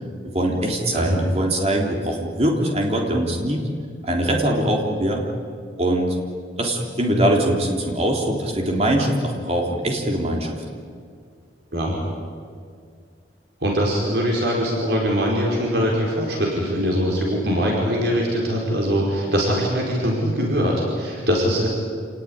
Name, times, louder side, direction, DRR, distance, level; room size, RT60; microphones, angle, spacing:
voice 1, 0.2-3.6 4.0-5.2 5.8-6.2 6.6-10.6, right 1 dB, 35° right, 1 dB, 3.6 m, -22 dB
voice 2, 13.6-21.7, equal, 65° right, -2 dB, 5.1 m, -22 dB
27.5 x 19.0 x 9.8 m, 2.2 s
head